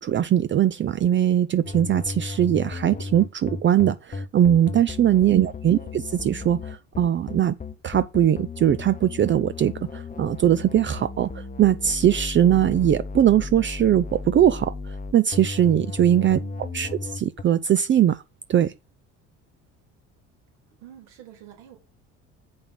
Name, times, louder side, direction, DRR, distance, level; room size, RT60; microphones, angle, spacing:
voice 1, 0.0-7.6 7.8-16.4 16.7-16.9 17.1-18.2 18.5-18.7, right 10 dB, 35° right, 0.5 m, -21 dB
sound 1, 1.6-17.4, left 3 dB, 25° left, 0.9 m, -35 dB
voice 2, 5.4-5.9 16.3-17.1 20.8-21.8, right 11 dB, 75° right, 3.7 m, -48 dB
7.0 x 5.3 x 5.9 m
hypercardioid pair, 70°, 35 cm